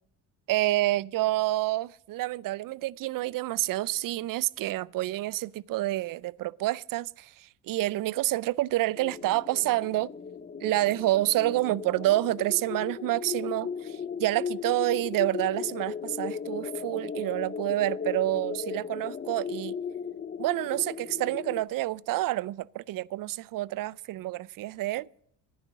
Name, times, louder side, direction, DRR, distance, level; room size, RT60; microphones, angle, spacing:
voice 1, 0.5-10.1 10.6-19.8 20.4-25.1, right 16 dB, 55° right, 0.5 m, -28 dB
sound 1, 9.0-21.6, left 6 dB, 25° left, 0.6 m, -37 dB
10.5 x 9.8 x 7.4 m
supercardioid pair, 85°, 40 cm